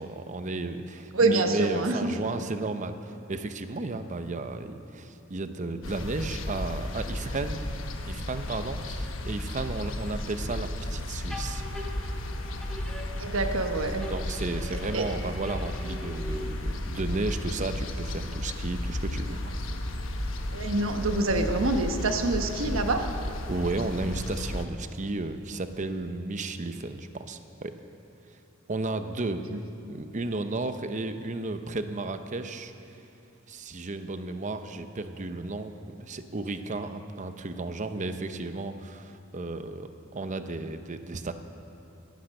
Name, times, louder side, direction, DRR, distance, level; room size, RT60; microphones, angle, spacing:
voice 1, 0.0-7.6 8.1-11.6 14.1-19.5 23.5-27.7 28.7-29.5 29.9-32.7 33.5-41.3, right 2 dB, 40° right, 9 dB, 0.7 m, -33 dB
voice 2, 1.1-2.1 13.2-14.1 14.7-15.0 20.5-23.1 29.5-29.6, right 2 dB, 90° right, 5 dB, 1.2 m, -26 dB
sound 1, 5.8-24.7, left 1 dB, 70° left, 1.1 m, -34 dB
sound 2, 11.3-13.7 14.0-16.9, left 1 dB, 5° left, 1.5 m, -42 dB
18.0 x 10.5 x 6.5 m, 2.9 s
head